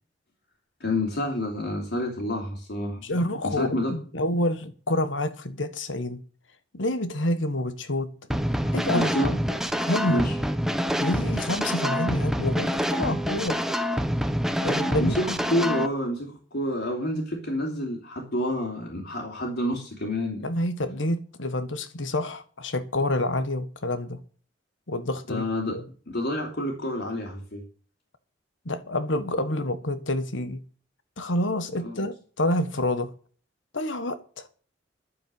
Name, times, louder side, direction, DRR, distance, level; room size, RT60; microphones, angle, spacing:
voice 1, 0.8-3.0 3.4-3.9 8.8-9.3 10.1-10.4 15.0-20.5 25.3-25.8 26.1-27.6 31.8-32.0, left 1 dB, 65° left, 3.2 m, -28 dB
voice 2, 3.0-6.2 6.7-8.1 8.7-9.4 9.9-10.2 10.9-13.6 14.6-15.1 20.4-24.2 24.9-25.4 25.7-25.8 28.6-30.6 31.2-33.1 33.7-34.5, left 1 dB, 85° left, 1.5 m, -28 dB
sound 1, 8.3-15.9, equal, ahead, 0.9 m, -26 dB
11.5 x 7.7 x 7.8 m
head